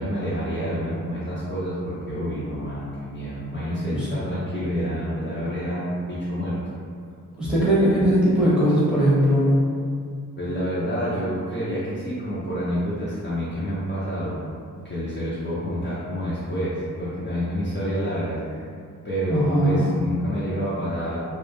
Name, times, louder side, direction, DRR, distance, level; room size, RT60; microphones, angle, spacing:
voice 1, 0.0-6.6 10.4-14.4 14.8-18.7 19.0-21.2, equal, 35° left, -10 dB, 0.5 m, -28 dB
voice 2, 7.4-9.6 19.3-19.8, equal, 5° right, -10 dB, 0.8 m, -19 dB
2.1 x 2.0 x 2.9 m, 2.2 s
wide cardioid pair, 110°, 34 cm